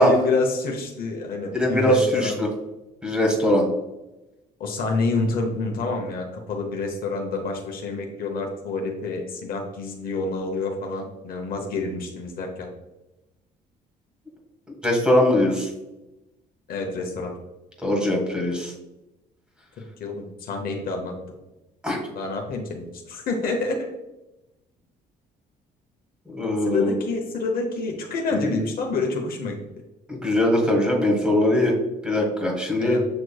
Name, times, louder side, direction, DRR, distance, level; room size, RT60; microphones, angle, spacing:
voice 1, 0.0-2.4 4.6-12.7 16.7-17.3 20.0-21.1 22.1-23.9 26.6-29.6 32.8-33.0, left 3 dB, 60° left, 2 dB, 0.9 m, -28 dB
voice 2, 1.5-2.5 3.0-3.7 14.8-15.7 17.8-18.7 21.8-22.0 26.3-26.9 28.3-28.6 30.1-31.7 32.0-33.0, left 1 dB, 5° right, -1 dB, 1.6 m, -21 dB
7.6 x 3.1 x 2.3 m, 0.98 s
cardioid pair, 110°, 17 cm